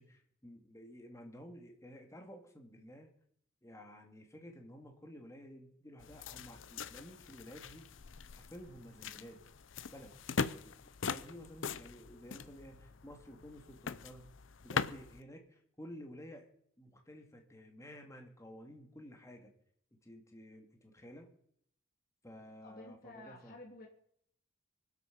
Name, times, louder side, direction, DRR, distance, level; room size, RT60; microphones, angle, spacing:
voice 1, 0.0-3.1 3.6-7.9 8.3-9.4 9.9-10.1 10.6-14.3 14.6-16.5 16.8-19.5 19.9-21.3 22.2-23.6, equal, 15° left, 3 dB, 2.2 m, -52 dB
sound 1, 6.0-15.2, left 5 dB, 70° left, 0.7 m, -41 dB
voice 2, 22.6-23.9, left 2 dB, 50° left, 0 dB, 2.9 m, -52 dB
24.0 x 8.2 x 5.2 m, 0.67 s
head